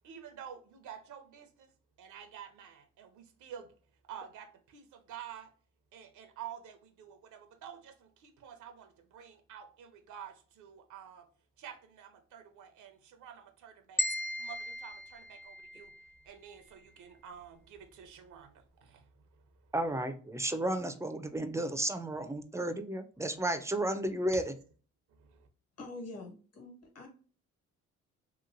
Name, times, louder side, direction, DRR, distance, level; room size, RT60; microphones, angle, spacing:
voice 1, 0.0-1.7 2.0-3.7 4.1-5.5 5.9-11.3 11.6-14.0 14.4-16.0 16.2-19.7 25.1-25.5, right 9 dB, 80° right, 0.7 m, -50 dB
sound 1, 14.0-16.2, left 1 dB, 35° left, 0.6 m, -36 dB
voice 2, 19.7-24.5, right 1 dB, 10° right, 0.4 m, -33 dB
voice 3, 25.8-27.1, left 2 dB, 55° left, 1.3 m, -45 dB
3.0 x 2.9 x 2.5 m
cardioid pair, 90°, 30 cm